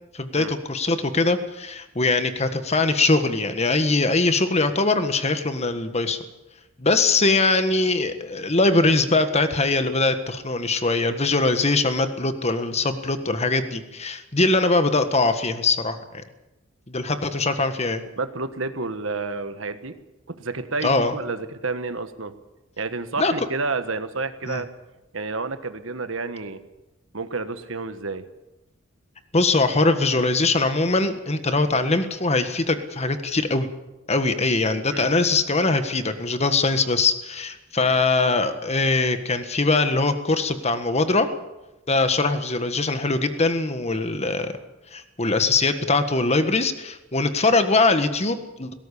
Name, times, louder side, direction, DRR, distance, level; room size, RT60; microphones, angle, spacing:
voice 1, 0.1-6.2 6.8-16.2 16.9-18.0 20.8-21.2 23.2-23.3 24.4-24.6 29.3-33.7 34.1-41.3 41.9-44.5 44.9-48.7, left 3 dB, 30° left, 9 dB, 1.6 m, -22 dB
voice 2, 18.2-19.9 20.3-22.3 22.8-24.7 25.1-26.6 27.1-28.2 34.9-35.1, right 3 dB, 70° right, 10 dB, 1.4 m, -30 dB
18.5 x 17.5 x 8.5 m, 1.0 s
head